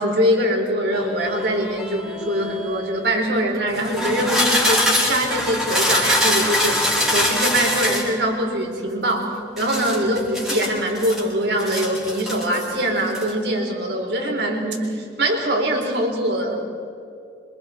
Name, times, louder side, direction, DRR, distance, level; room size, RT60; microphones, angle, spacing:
voice 1, 0.0-6.8 7.1-16.6, right 1 dB, 65° right, 1 dB, 4.7 m, -23 dB
sound 1, 0.9-2.9 3.7-8.1 9.6-11.2 11.6-12.7 13.0-13.3, left 1 dB, ahead, 4.5 m, -23 dB
27.5 x 26.5 x 4.6 m, 2.4 s
head